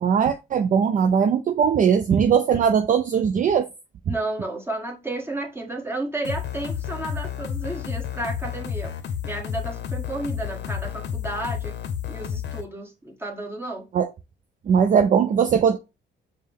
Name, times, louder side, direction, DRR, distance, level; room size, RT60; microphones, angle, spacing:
voice 1, 0.0-3.7 4.1-4.2 13.9-14.1 14.7-15.8, right 7 dB, 40° right, 0.4 m, -20 dB
voice 2, 4.1-8.9 9.2-11.7 12.1-13.9, right 2 dB, 10° right, 1.2 m, -32 dB
sound 1, 6.2-12.6, left 8 dB, 60° left, 0.7 m, -31 dB
5.3 x 2.1 x 3.4 m
cardioid pair, 90°, 20 cm